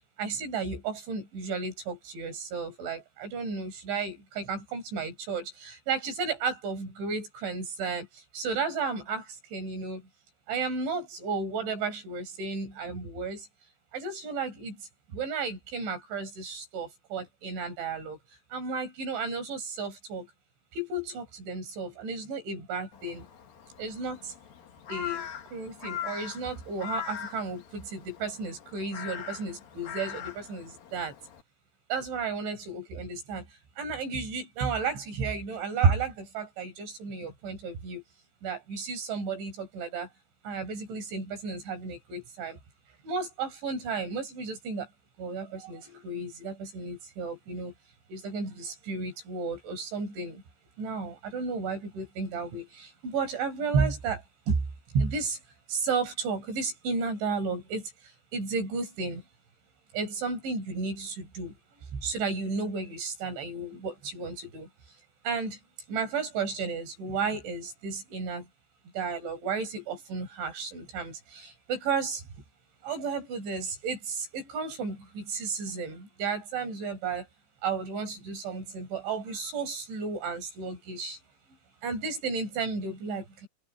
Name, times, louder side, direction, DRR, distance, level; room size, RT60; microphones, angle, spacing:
voice 1, 0.2-8.1 8.3-10.0 10.5-13.5 13.9-14.7 15.1-18.2 18.5-20.3 20.7-23.2 23.8-24.3 24.9-31.1 31.9-33.4 33.8-38.0 38.4-40.1 40.5-42.6 43.0-44.9 45.2-47.7 48.1-50.4 50.8-54.2 54.5-54.6 54.9-55.4 55.7-57.8 58.3-59.2 59.9-61.5 61.9-64.7 65.2-65.6 65.9-68.4 69.0-72.2 72.8-77.2 77.6-81.2 81.8-83.5, right 4 dB, 70° right, 8.0 m, -33 dB
Crow, 22.9-31.4, left 8 dB, 55° left, 3.6 m, -41 dB
open air
omnidirectional pair, 5.5 m